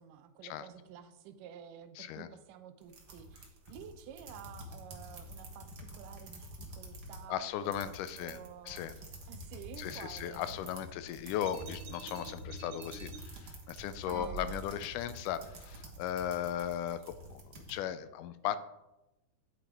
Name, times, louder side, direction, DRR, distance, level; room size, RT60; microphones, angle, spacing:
voice 1, 0.0-8.9 9.3-10.5 14.1-14.5, right 9 dB, 85° right, 9 dB, 2.3 m, -51 dB
voice 2, 2.0-2.3 7.3-8.9 9.8-18.6, left 10 dB, 85° left, 13 dB, 2.1 m, -37 dB
sound 1, 2.8-7.3 7.6-17.7, right 1 dB, 50° right, 1.2 m, -49 dB
sound 2, 11.4-13.2 14.1-15.0, right 4 dB, 70° right, 2.5 m, -45 dB
10.5 x 8.5 x 3.5 m, 0.96 s
omnidirectional pair, 3.7 m